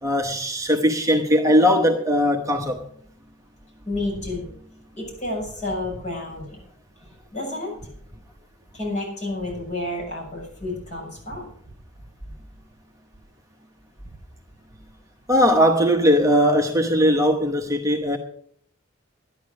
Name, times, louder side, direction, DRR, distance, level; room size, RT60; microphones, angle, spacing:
voice 1, 0.0-2.8 15.3-18.2, equal, 15° right, 1.0 m, -19 dB
voice 2, 3.8-4.5 5.0-6.6 7.3-7.7 8.7-11.5 14.0-14.1, left 2 dB, 35° left, 6.8 m, -30 dB
11.5 x 10.0 x 6.4 m
head